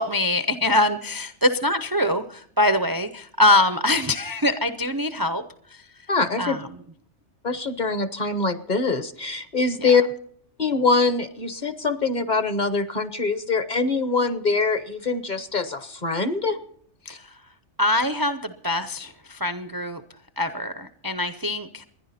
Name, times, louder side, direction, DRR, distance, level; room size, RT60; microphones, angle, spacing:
voice 1, 0.0-5.4 6.4-6.6 9.8-9.9 17.0-17.3 17.8-20.0 20.4-21.8, left 1 dB, 25° right, 9 dB, 0.5 m, -23 dB
voice 2, 6.1-6.6 7.4-10.0 10.6-16.6 17.1-17.2, left 4 dB, 40° left, 11 dB, 1.1 m, -23 dB
28.0 x 10.5 x 4.2 m, 0.64 s
omnidirectional pair, 1.2 m